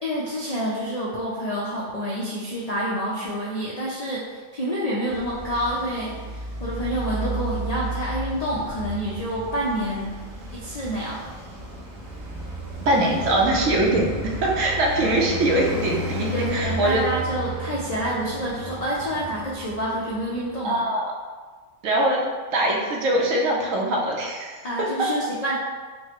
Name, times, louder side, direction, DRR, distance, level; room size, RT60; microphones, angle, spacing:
voice 1, 0.0-10.1 10.5-11.2 16.3-20.8 24.6-25.5, equal, 90° left, -5 dB, 0.3 m, -28 dB
Traffic noise roadway noise, 5.1-20.6, equal, 55° right, 0.9 m, -33 dB
voice 2, 12.9-17.0 20.6-21.0 21.8-22.2 22.5-24.6, right 1 dB, 90° right, -1 dB, 1.1 m, -22 dB
4.4 x 2.0 x 2.9 m, 1.4 s
omnidirectional pair, 1.3 m